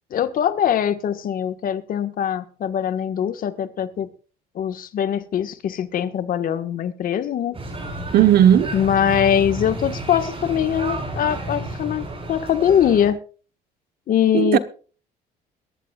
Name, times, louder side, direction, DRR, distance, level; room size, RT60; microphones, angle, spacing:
voice 1, 0.1-4.1 4.5-7.6 8.7-13.2 14.1-14.6, left 9 dB, 55° left, 1.6 m, -22 dB
sound 1, 7.5-13.1, right 1 dB, 35° right, 6.2 m, -31 dB
voice 2, 8.1-8.8 14.3-14.6, right 11 dB, 65° right, 1.2 m, -15 dB
22.0 x 11.0 x 2.5 m
cardioid pair, 110°, 17 cm